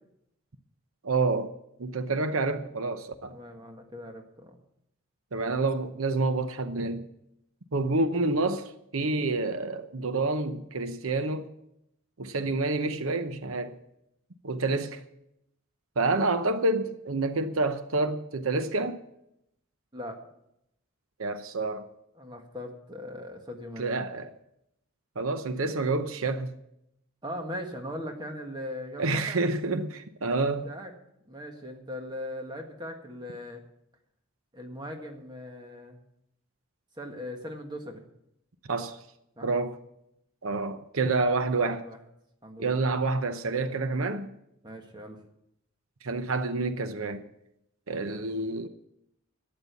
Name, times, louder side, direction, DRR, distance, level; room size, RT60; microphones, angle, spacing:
voice 1, 1.0-1.5 1.8-3.3 5.3-7.1 7.7-11.5 12.2-13.8 14.4-15.0 16.0-19.0 21.2-21.8 23.8-24.3 25.2-26.5 29.0-30.7 38.7-39.0 39.4-39.8 40.4-41.8 42.6-44.3 46.0-47.2 47.9-48.7, right 3 dB, 85° right, 0.8 m, -28 dB
voice 2, 3.3-4.6 19.9-20.2 22.1-24.0 27.2-29.4 30.3-30.9 31.3-33.6 34.5-36.0 37.0-38.0 39.4-39.5 41.6-42.0 42.4-42.8 44.6-45.2 47.9-48.2, left 1 dB, 20° right, 1.6 m, -40 dB
12.0 x 8.7 x 8.3 m
head